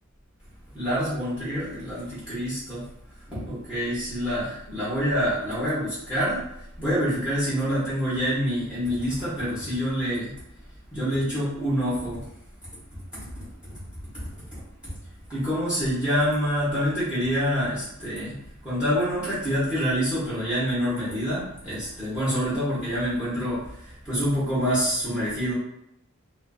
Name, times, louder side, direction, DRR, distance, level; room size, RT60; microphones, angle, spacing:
voice 1, 0.7-2.8 3.3-6.4 6.8-10.3 10.9-12.2 14.1-14.3 15.3-18.4 18.6-25.5, equal, 5° right, -11 dB, 0.8 m, -26 dB
2.4 x 2.4 x 2.3 m, 0.78 s
head